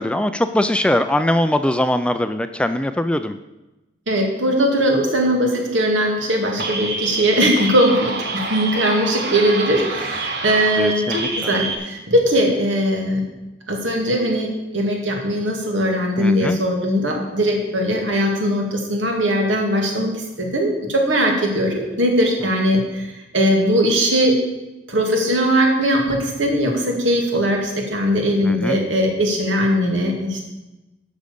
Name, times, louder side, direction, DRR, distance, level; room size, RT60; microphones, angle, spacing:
voice 1, 0.0-3.4 10.8-11.5 16.2-16.6 28.4-28.8, left 1 dB, 5° left, 10 dB, 0.3 m, -21 dB
voice 2, 4.1-13.2 13.7-24.4 24.9-30.4, equal, 80° right, 1 dB, 2.4 m, -20 dB
sound 1, 6.6-11.8, right 3 dB, 55° right, 1.5 m, -27 dB
11.5 x 6.3 x 6.9 m, 1.0 s
head